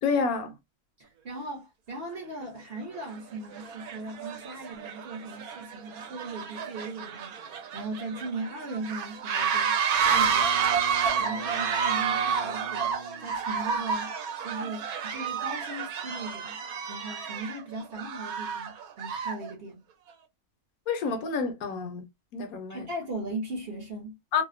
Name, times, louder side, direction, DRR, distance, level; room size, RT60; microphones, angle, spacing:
voice 1, 0.0-0.5 20.9-22.0 22.3-22.8 24.3-24.4, left 5 dB, 70° left, 1.0 m, -28 dB
voice 2, 1.0-9.8 10.1-10.8 11.2-14.1 14.4-16.6 16.9-19.8 22.7-24.2, right 2 dB, 50° right, 0.8 m, -38 dB
sound 1, 2.1-2.2 2.9-3.2 3.5-19.5, right 7 dB, 70° right, 1.1 m, -30 dB
Wind instrument woodwind instrument, 10.0-13.5, right 2 dB, 5° right, 0.7 m, -41 dB
2.7 x 2.0 x 2.4 m
omnidirectional pair, 1.7 m